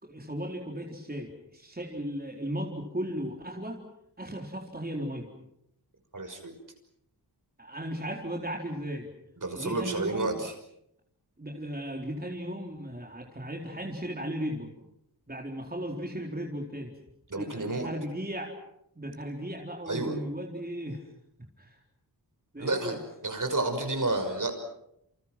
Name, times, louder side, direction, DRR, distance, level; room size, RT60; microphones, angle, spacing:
voice 1, 0.0-3.8 4.2-5.3 7.6-9.1 9.5-10.4 11.4-14.7 15.3-16.9 17.3-18.5 19.0-21.0 21.6-21.8 22.5-23.0, equal, 20° right, 0 dB, 4.2 m, -36 dB
voice 2, 6.1-6.5 9.4-10.5 17.3-17.9 19.9-20.2 22.6-24.5, right 2 dB, 50° right, 5 dB, 6.0 m, -30 dB
29.5 x 28.5 x 6.1 m, 0.78 s
wide cardioid pair, 90°, 40 cm